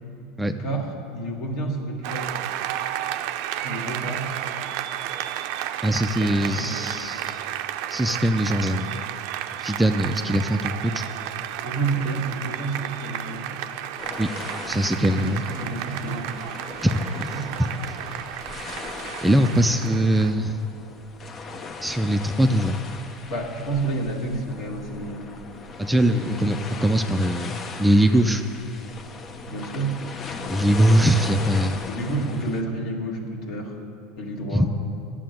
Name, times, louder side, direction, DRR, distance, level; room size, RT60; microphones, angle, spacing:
voice 1, 0.5-2.3 3.5-4.4 6.1-6.7 11.6-13.6 14.9-15.3 15.6-16.3 17.3-17.4 23.3-25.3 26.1-26.4 29.5-30.0 31.9-33.8 34.2-34.7, right 3 dB, 60° left, 0 dB, 2.2 m, -30 dB
Applause, 2.0-20.3, right 12 dB, 70° right, 0.5 m, -32 dB
voice 2, 5.8-7.4 7.9-9.0 9.6-11.1 14.2-14.3 14.6-15.4 16.8-17.3 19.2-20.6 21.8-22.8 25.8-28.4 30.5-31.8 34.5-34.7, right 1 dB, 5° right, 6 dB, 0.5 m, -21 dB
sound 1, 14.0-32.6, left 4 dB, 35° left, 0.8 m, -38 dB
10.5 x 7.6 x 9.2 m, 2.6 s
supercardioid pair, 110°, 0 cm